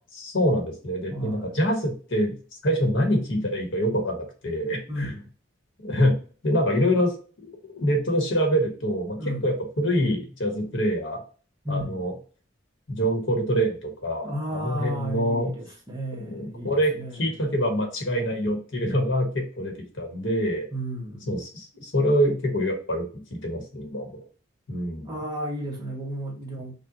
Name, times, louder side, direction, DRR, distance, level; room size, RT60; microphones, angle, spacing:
voice 1, 0.1-2.4 2.6-5.1 5.8-6.2 6.4-7.1 7.4-7.5 7.8-11.2 11.7-12.1 12.9-15.5 16.2-20.7 21.3-24.2 24.7-25.1, equal, 80° left, 1.4 m, -25 dB
voice 2, 1.1-1.6 4.9-5.3 9.2-9.5 11.6-12.0 14.2-17.2 20.7-21.3 25.0-26.7, equal, 20° right, 1.3 m, -33 dB
5.4 x 2.4 x 2.7 m
head